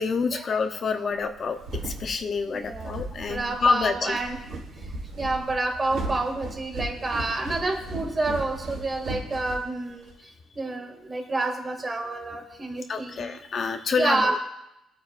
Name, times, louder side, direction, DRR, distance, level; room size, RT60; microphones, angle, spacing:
voice 1, 0.0-1.6 1.8-4.2 12.9-14.4, left 5 dB, 50° left, 6 dB, 0.9 m, -27 dB
sound 1, 1.2-10.1, right 2 dB, 85° right, 4.3 m, -36 dB
voice 2, 2.5-4.4 5.2-10.1 10.6-13.4 14.0-14.4, right 2 dB, 30° right, 2 dB, 2.4 m, -29 dB
23.0 x 9.0 x 2.6 m, 0.87 s
cardioid pair, 90°, 0 cm